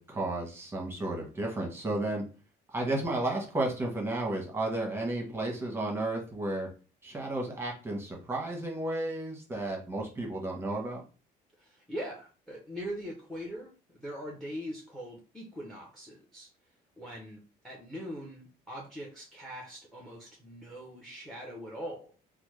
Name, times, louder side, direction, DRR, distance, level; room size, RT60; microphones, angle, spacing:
voice 1, 0.0-2.2 2.7-6.7 7.0-11.0, right 2 dB, 15° right, -1 dB, 1.1 m, -33 dB
voice 2, 11.6-16.5 17.0-22.1, equal, ahead, -1 dB, 0.7 m, -42 dB
3.2 x 2.1 x 3.1 m, 0.35 s
cardioid pair, 110°, 17 cm